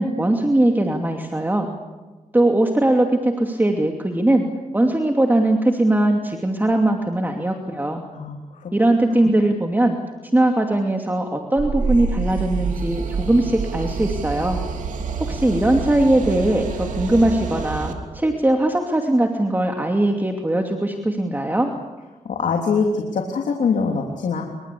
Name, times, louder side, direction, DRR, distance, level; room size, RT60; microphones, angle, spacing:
voice 1, 0.0-1.7 2.3-4.4 4.7-8.0 8.7-10.0 10.3-14.6 15.3-21.7, right 1 dB, 15° right, 3 dB, 2.7 m, -20 dB
voice 2, 8.1-8.7 9.2-9.3 22.2-24.4, left 5 dB, 80° left, 2 dB, 3.3 m, -23 dB
sound 1, 11.6-17.9, right 5 dB, 85° right, 3.2 m, -27 dB
27.0 x 24.5 x 8.5 m, 1.2 s
cardioid pair, 75°, 13 cm